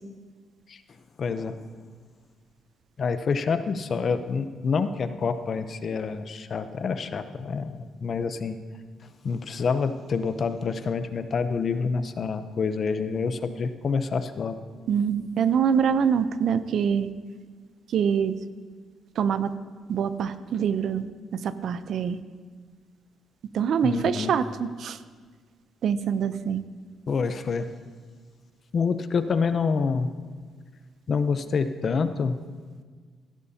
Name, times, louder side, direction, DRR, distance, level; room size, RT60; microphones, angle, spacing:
voice 1, 1.2-1.6 3.0-8.6 9.2-14.6 23.8-24.3 27.1-27.7 28.7-30.1 31.1-32.4, left 5 dB, 50° left, 10 dB, 0.7 m, -27 dB
voice 2, 14.9-17.1 17.9-18.3 19.2-19.5 19.9-21.0 21.3-22.2 23.5-25.0 25.8-26.6, right 7 dB, 65° right, 13 dB, 0.5 m, -24 dB
15.0 x 12.0 x 2.8 m, 1.5 s
cardioid pair, 90°, 0 cm